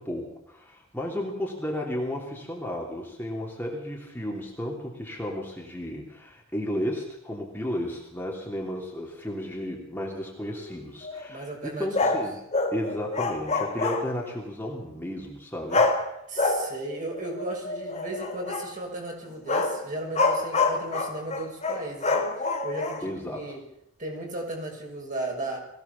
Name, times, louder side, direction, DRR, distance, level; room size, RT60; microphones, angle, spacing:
voice 1, 0.0-12.4 12.7-15.8 23.0-23.6, left 1 dB, 10° left, -2 dB, 3.2 m, -33 dB
sound 1, 10.4-11.3 11.9-14.3 15.7-16.1 16.4-18.7 19.3-23.0, left 3 dB, 35° left, 3.4 m, -27 dB
voice 2, 11.3-12.2 16.3-22.3 22.6-23.6 24.0-25.6, right 2 dB, 40° right, 0 dB, 6.4 m, -35 dB
22.5 x 16.5 x 7.3 m, 0.79 s
head